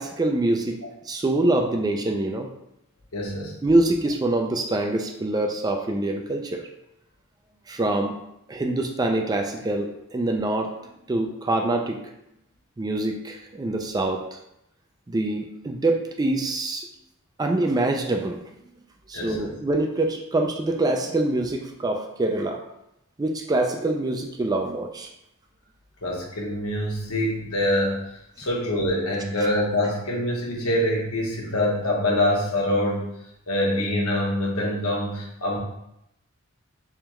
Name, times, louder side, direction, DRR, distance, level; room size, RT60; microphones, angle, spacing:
voice 1, 0.0-2.5 3.6-6.7 7.7-8.2 8.5-12.0 12.8-14.4 15.1-16.9 17.4-18.4 19.1-22.6 23.2-25.1, right 2 dB, 20° right, 3 dB, 0.3 m, -25 dB
voice 2, 3.1-3.6 19.1-19.5 26.0-28.0 28.4-33.1 33.5-35.6, left 1 dB, 90° left, -2 dB, 1.0 m, -25 dB
3.5 x 3.4 x 3.1 m, 0.81 s
head